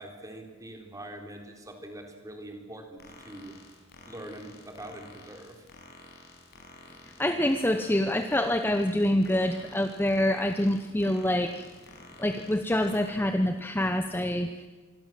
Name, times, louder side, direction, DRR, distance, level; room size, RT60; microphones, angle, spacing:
voice 1, 0.0-3.6 4.1-5.7, right 1 dB, 15° right, 3 dB, 3.8 m, -43 dB
sound 1, 3.0-13.1, left 2 dB, 50° left, 6.1 m, -51 dB
voice 2, 7.2-11.7 12.2-14.7, left 1 dB, 10° left, 8 dB, 0.9 m, -26 dB
26.5 x 22.5 x 7.6 m, 1.3 s
head